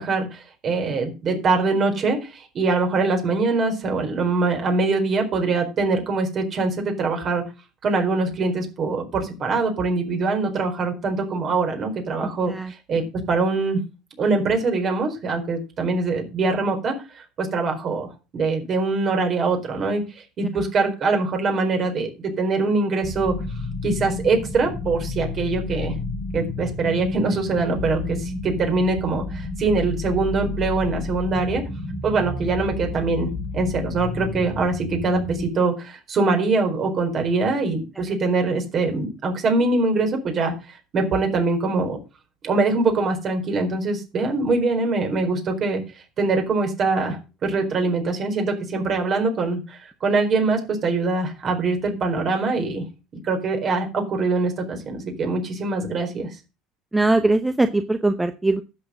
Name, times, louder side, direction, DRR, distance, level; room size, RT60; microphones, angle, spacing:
voice 1, 0.0-7.4 7.8-13.8 14.2-23.3 23.8-25.9 26.3-31.7 32.0-42.0 42.4-45.8 46.2-52.8 53.2-56.3, right 3 dB, 45° right, 4 dB, 4.4 m, -23 dB
sound 1, 23.0-35.5, left 2 dB, 25° left, 2.0 m, -30 dB
voice 2, 56.9-58.6, right 2 dB, 10° right, 9 dB, 0.9 m, -20 dB
11.0 x 7.3 x 6.3 m, 0.30 s
supercardioid pair, 100°, 0 cm